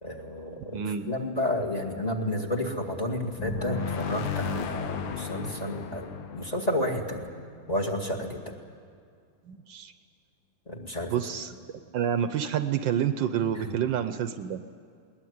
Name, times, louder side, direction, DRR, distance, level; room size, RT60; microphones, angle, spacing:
voice 1, 0.0-7.3 7.7-8.5 10.7-11.1 13.6-13.7, left 1 dB, 20° left, 2 dB, 2.1 m, -31 dB
voice 2, 0.7-1.1 9.5-9.9 11.1-14.6, right 9 dB, 70° right, 10 dB, 1.4 m, -29 dB
sound 1, 3.4-8.0, left 6 dB, 75° left, 1.8 m, -34 dB
21.0 x 20.0 x 9.4 m, 2.2 s
omnidirectional pair, 2.2 m